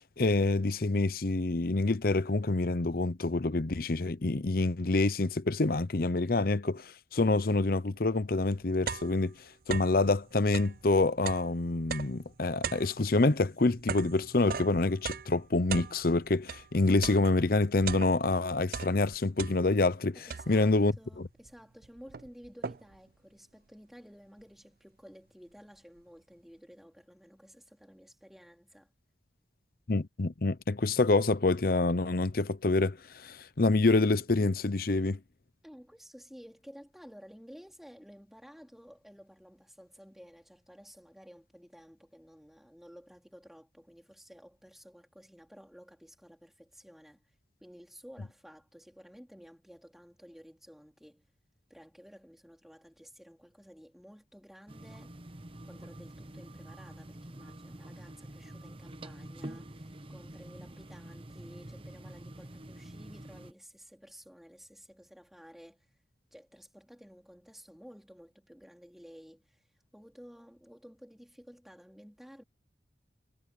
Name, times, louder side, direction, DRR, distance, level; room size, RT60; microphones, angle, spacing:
voice 1, 0.2-9.3 9.7-20.2 20.5-21.3 29.9-35.2, left 2 dB, 55° left, 0.8 m, -27 dB
sound 1, 8.0-8.1 8.4-10.1 10.4-16.7 17.0-18.4 18.7-19.9 20.3-20.8 21.5-21.6 21.8-23.1, right 6 dB, 50° right, 0.5 m, -39 dB
voice 2, 20.1-28.9 35.6-47.3 47.6-51.2 51.7-55.2 55.6-65.9 66.3-69.7 69.9-72.4, equal, ahead, 3.1 m, -53 dB
sound 2, 54.7-63.5, right 1 dB, 30° right, 0.9 m, -47 dB
head